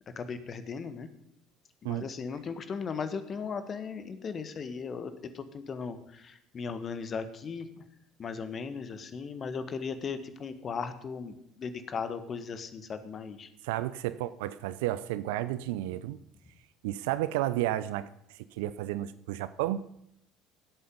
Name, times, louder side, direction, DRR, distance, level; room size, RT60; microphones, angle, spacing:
voice 1, 0.1-1.1 1.8-7.8 8.2-13.5, left 5 dB, 40° left, 10 dB, 1.6 m, -37 dB
voice 2, 13.6-16.2 16.8-19.8, right 14 dB, 70° right, 15 dB, 0.5 m, -32 dB
16.5 x 8.6 x 5.5 m, 0.75 s
figure-of-eight pair, 60°, 0 cm